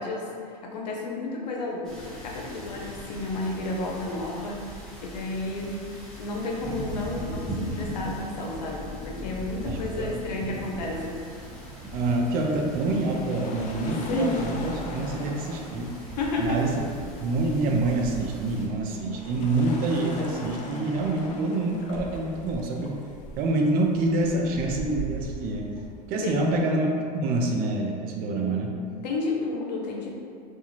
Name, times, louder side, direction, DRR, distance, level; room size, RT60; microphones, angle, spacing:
voice 1, 0.0-4.7 5.0-5.8 6.2-11.2 13.9-14.4 16.2-16.6 26.2-26.5 29.0-30.2, left 2 dB, 90° left, -1 dB, 0.5 m, -31 dB
sound 1, 1.8-18.6, equal, 5° left, 0.8 m, -39 dB
voice 2, 9.6-10.1 11.9-16.8 17.2-23.0 23.4-25.7 26.1-26.9 27.1-28.8, right 2 dB, 45° right, 1 dB, 0.4 m, -26 dB
sound 2, 12.7-26.7, left 1 dB, 35° left, 0.4 m, -40 dB
2.4 x 2.2 x 3.0 m, 2.3 s
hypercardioid pair, 105°, 21 cm